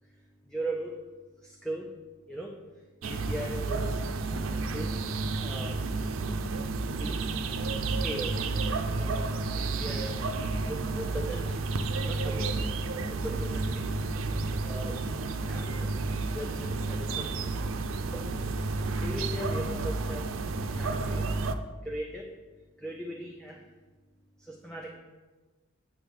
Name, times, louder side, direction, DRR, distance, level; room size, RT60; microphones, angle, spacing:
voice 1, 0.0-1.0 1.4-2.0 2.3-4.2 4.5-5.8 6.9-7.4 7.8-10.2 10.6-11.6 12.1-14.0 14.6-15.0 15.5-16.0 16.3-17.6 18.0-18.3 19.0-20.4 20.8-21.3 21.8-22.3 22.8-23.7 24.4-25.0, right 1 dB, 5° left, -1 dB, 0.6 m, -39 dB
sound 1, 3.0-21.5, right 3 dB, 90° right, 0.5 m, -31 dB
9.3 x 3.4 x 6.1 m, 1.2 s
head